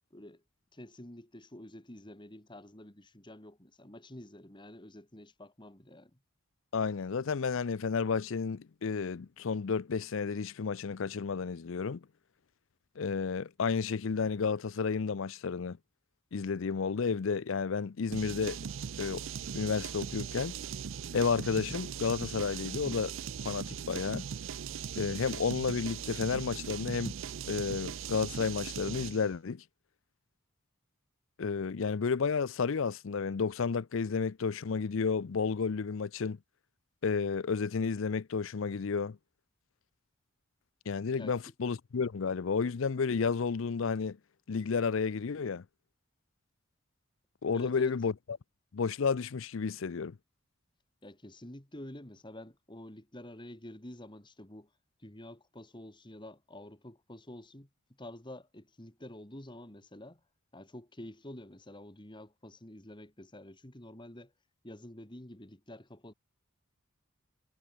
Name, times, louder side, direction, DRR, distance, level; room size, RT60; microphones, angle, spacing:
voice 1, 0.1-0.4 0.7-6.2 41.1-41.3 47.5-47.9 51.0-54.7 55.0-57.7 58.0-60.2 60.5-64.3 64.6-66.1, left 1 dB, 20° left, 2.5 m, -48 dB
voice 2, 6.7-12.1 13.0-15.8 16.3-18.6 19.0-19.2 19.5-20.5 21.1-23.1 23.4-24.2 25.0-27.2 27.5-29.6 31.4-36.4 37.0-39.2 40.9-44.2 44.5-45.6 47.4-48.1 48.7-50.2, left 5 dB, 65° left, 0.5 m, -31 dB
sound 1, 18.1-29.3, right 7 dB, 65° right, 0.5 m, -39 dB
head